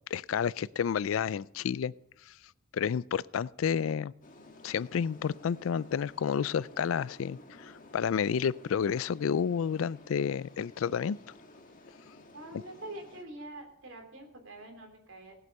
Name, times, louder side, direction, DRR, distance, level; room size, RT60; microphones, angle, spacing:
voice 1, 0.1-1.9 2.3-2.4 2.7-4.1 4.6-11.2, left 7 dB, 70° left, 0.4 m, -30 dB
sound 1, 4.2-13.2, left 1 dB, 40° left, 1.6 m, -54 dB
voice 2, 12.3-15.3, right 1 dB, 70° right, 3.3 m, -45 dB
17.5 x 8.0 x 5.4 m
head